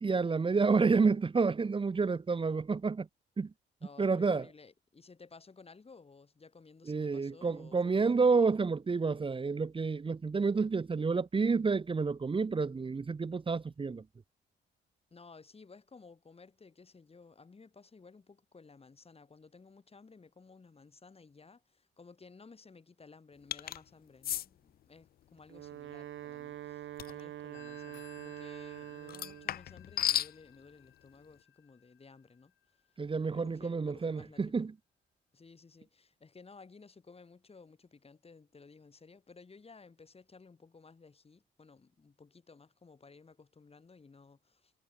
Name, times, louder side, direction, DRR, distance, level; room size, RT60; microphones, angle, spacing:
voice 1, 0.0-3.1 3.4-3.5 4.0-4.5 6.9-14.0 33.0-34.7, right 4 dB, 25° right, 1.0 m, -29 dB
voice 2, 3.8-8.4 15.1-34.7 35.3-44.7, left 4 dB, 30° left, 6.2 m, -56 dB
sound 1, 23.5-23.8 24.2-24.5 27.0-27.2 29.1-30.3, left 12 dB, 50° left, 0.4 m, -33 dB
Wind instrument woodwind instrument, 25.4-29.6, right 12 dB, 75° right, 2.3 m, -45 dB
Telephone, 27.5-32.9, left 12 dB, 75° left, 2.9 m, -59 dB
cardioid pair, 90°, 20 cm